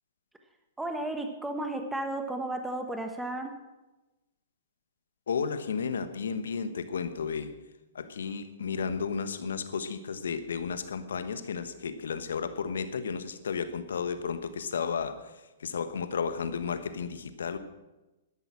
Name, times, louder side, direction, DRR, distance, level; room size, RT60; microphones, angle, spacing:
voice 1, 0.8-3.5, right 2 dB, 5° right, 6 dB, 1.3 m, -33 dB
voice 2, 5.3-7.5 7.9-15.2 15.6-17.6, left 6 dB, 70° left, 11 dB, 1.2 m, -33 dB
12.5 x 11.0 x 6.2 m, 1.1 s
figure-of-eight pair, 115°, 0 cm